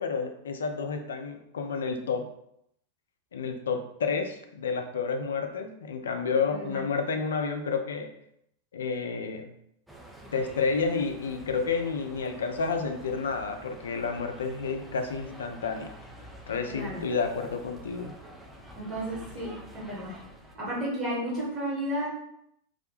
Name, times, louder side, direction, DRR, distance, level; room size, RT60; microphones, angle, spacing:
voice 1, 0.0-2.3 3.3-8.1 8.7-9.5 10.3-15.9 16.5-18.1, left 5 dB, 65° left, 5 dB, 0.3 m, -30 dB
voice 2, 6.5-6.8 16.7-17.0 18.8-20.2 20.5-22.1, right 1 dB, 25° right, -6 dB, 1.2 m, -33 dB
sound 1, 9.9-20.6, equal, 5° right, 0.4 m, -48 dB
2.3 x 2.1 x 2.8 m, 0.74 s
figure-of-eight pair, 90°, 0 cm